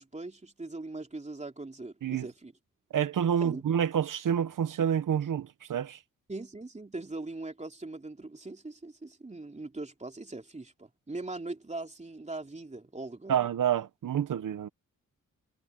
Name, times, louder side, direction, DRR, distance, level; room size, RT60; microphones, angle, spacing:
voice 1, 0.0-2.5 3.4-3.6 6.3-13.4, right 2 dB, 20° right, 3.3 m, -41 dB
voice 2, 2.9-6.0 13.3-14.7, right 9 dB, 75° right, 1.1 m, -28 dB
cardioid pair, 80°, 32 cm